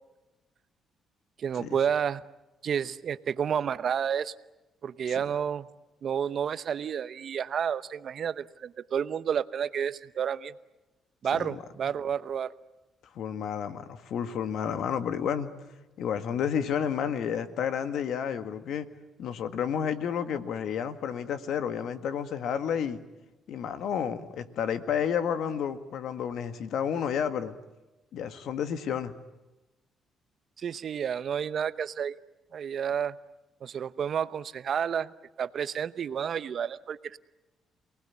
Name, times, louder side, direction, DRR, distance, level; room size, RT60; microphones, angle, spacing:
voice 1, 1.4-2.2 2.6-4.3 4.8-5.7 6.0-10.5 11.2-12.5 30.6-32.2 32.5-33.2 33.6-35.1 35.4-37.2, right 8 dB, 55° right, 15 dB, 0.9 m, -30 dB
voice 2, 11.3-11.6 13.2-15.5 16.0-18.9 19.2-23.0 23.5-27.6 28.1-29.1, left 8 dB, 75° left, 10 dB, 1.8 m, -31 dB
28.5 x 19.0 x 9.7 m, 1.0 s
cardioid pair, 90°, 0 cm